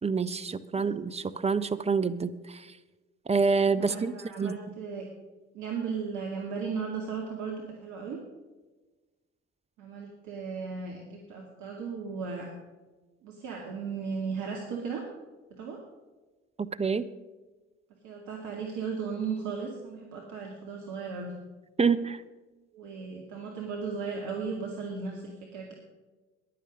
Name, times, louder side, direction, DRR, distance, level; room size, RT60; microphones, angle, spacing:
voice 1, 0.0-2.7 3.3-4.6 16.6-17.1 21.8-22.2, right 5 dB, 20° right, 12 dB, 0.7 m, -27 dB
voice 2, 3.8-5.1 5.5-8.2 9.8-12.5 13.2-15.1 15.5-15.8 18.0-21.3 22.7-25.7, right 5 dB, 60° right, 0 dB, 2.3 m, -36 dB
15.5 x 11.0 x 5.2 m, 1.2 s
figure-of-eight pair, 50°, 34 cm